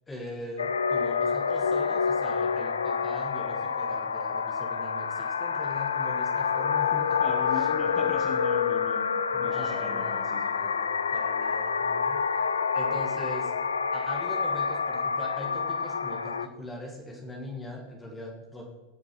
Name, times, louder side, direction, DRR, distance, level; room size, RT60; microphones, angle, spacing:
voice 1, 0.1-7.2 7.5-7.7 9.3-12.2 12.7-13.6 13.9-18.7, left 1 dB, 10° left, 0 dB, 1.6 m, -41 dB
sound 1, 0.6-16.5, left 6 dB, 70° left, 0.4 m, -28 dB
voice 2, 7.2-10.5, left 4 dB, 25° left, 3 dB, 1.1 m, -39 dB
18.5 x 8.6 x 3.0 m, 1.3 s
figure-of-eight pair, 90°, 0 cm